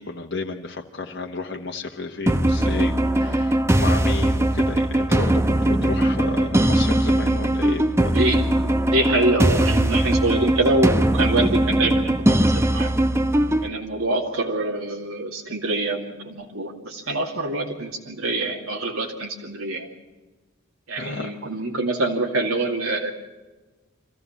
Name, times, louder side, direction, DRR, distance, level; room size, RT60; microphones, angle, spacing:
voice 1, 0.0-8.1 21.0-21.3 22.9-23.0, left 3 dB, 55° left, 1 dB, 1.2 m, -32 dB
sound 1, 2.3-13.7, right 1 dB, 15° right, 0.9 m, -20 dB
voice 2, 8.0-12.9 13.6-19.9 20.9-23.1, right 2 dB, 85° right, 0 dB, 2.4 m, -25 dB
25.5 x 15.5 x 7.1 m, 1.2 s
head